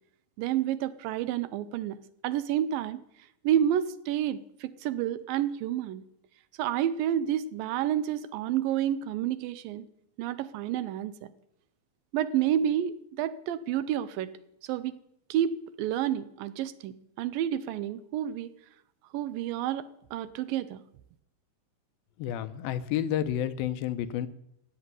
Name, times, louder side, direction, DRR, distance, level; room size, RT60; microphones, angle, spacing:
voice 1, 0.4-2.0 2.2-3.0 3.4-6.0 6.6-9.9 10.2-11.3 12.1-14.3 14.6-15.0 15.3-18.5 19.1-20.8, right 10 dB, 80° right, 14 dB, 2.4 m, -29 dB
voice 2, 22.2-24.3, left 10 dB, 85° left, 12 dB, 2.6 m, -30 dB
15.5 x 6.7 x 9.6 m, 0.78 s
omnidirectional pair, 4.1 m